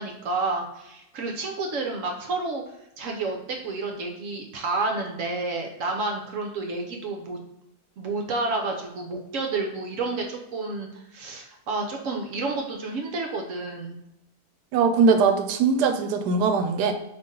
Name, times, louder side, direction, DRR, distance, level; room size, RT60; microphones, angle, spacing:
voice 1, 0.0-2.6 3.0-7.4 8.0-14.0, right 3 dB, 65° right, 2 dB, 0.9 m, -30 dB
voice 2, 14.7-16.9, right 5 dB, 90° right, 8 dB, 1.2 m, -21 dB
4.0 x 2.9 x 3.7 m, 0.85 s
omnidirectional pair, 1.7 m